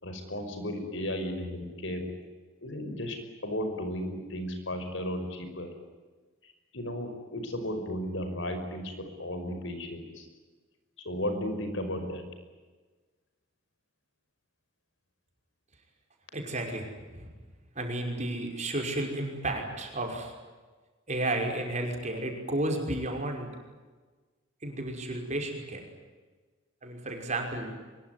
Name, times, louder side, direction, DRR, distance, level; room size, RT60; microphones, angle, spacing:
voice 1, 0.0-2.1 2.6-3.2 3.4-5.7 6.4-10.3 11.0-12.2, left 1 dB, 65° left, 6 dB, 5.7 m, -34 dB
voice 2, 16.3-17.3 17.8-20.3 21.1-23.5 24.6-25.9 26.8-27.7, right 1 dB, 35° right, 3 dB, 5.7 m, -32 dB
24.0 x 22.5 x 9.6 m, 1.3 s
head